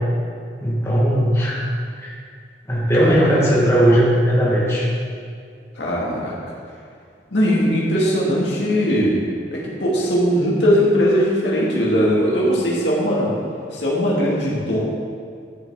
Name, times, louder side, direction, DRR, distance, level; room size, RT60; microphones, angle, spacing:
voice 1, 0.6-1.6 2.0-2.1 2.7-4.9, equal, 15° left, -6 dB, 1.6 m, -17 dB
voice 2, 3.0-3.3 5.8-6.3 7.3-9.2 9.5-13.3 13.7-14.8, equal, 85° left, -5 dB, 2.2 m, -19 dB
12.0 x 7.3 x 3.7 m, 2.3 s
head